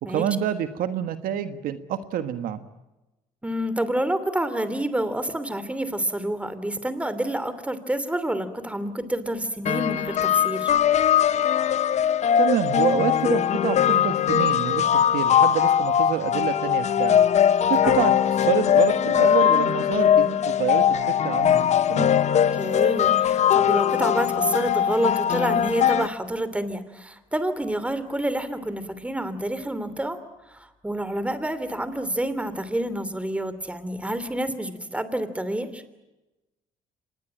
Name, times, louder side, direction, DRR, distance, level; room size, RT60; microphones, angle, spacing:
voice 1, 0.0-2.6 12.4-14.8 15.1-17.2 17.7-18.1 18.4-22.2, right 10 dB, 75° right, 10 dB, 1.5 m, -27 dB
voice 2, 3.4-10.7 17.8-18.0 22.5-30.2 30.5-35.8, right 1 dB, 10° right, 12 dB, 3.0 m, -28 dB
sound 1, 9.7-26.1, left 9 dB, 50° left, 0.8 m, -21 dB
25.5 x 20.0 x 8.9 m, 1.0 s
supercardioid pair, 80°, 15 cm